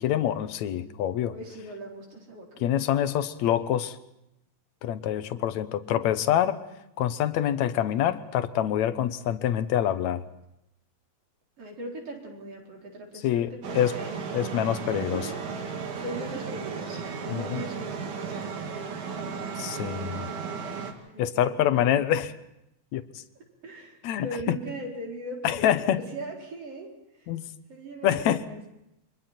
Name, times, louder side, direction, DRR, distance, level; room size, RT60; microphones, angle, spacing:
voice 1, 0.0-1.4 2.6-4.0 4.8-6.6 7.0-10.2 13.2-14.0 14.3-15.3 17.3-17.6 19.6-20.3 21.2-22.3 22.9-23.2 24.0-24.6 25.4-26.0 27.3-27.4 28.0-28.4, left 11 dB, 75° left, 11 dB, 2.2 m, -26 dB
voice 2, 1.2-2.6 11.6-14.4 14.9-15.3 15.6-18.4 21.1-22.1 23.6-27.3 27.7-28.7, right 1 dB, 50° right, -1 dB, 5.3 m, -40 dB
sound 1, 13.6-20.9, right 5 dB, 85° right, 3.6 m, -35 dB
29.0 x 24.5 x 4.4 m, 0.85 s
omnidirectional pair, 3.4 m